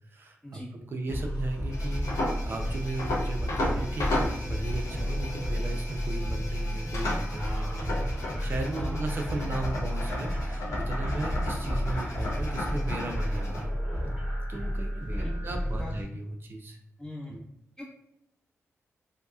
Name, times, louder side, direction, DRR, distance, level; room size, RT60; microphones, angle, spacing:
voice 1, 0.1-2.0 2.5-8.1 8.4-13.7 14.5-16.8 17.3-17.4, right 2 dB, 45° right, 3 dB, 0.4 m, -36 dB
sound 1, 1.1-16.0, equal, 10° right, 1.1 m, -31 dB
sound 2, 1.7-13.6, left 1 dB, 80° left, 0.5 m, -36 dB
voice 2, 17.0-17.3 17.8-17.9, left 1 dB, 15° left, -5 dB, 0.8 m, -40 dB
2.7 x 2.0 x 2.3 m, 0.80 s
wide cardioid pair, 120°, 5 cm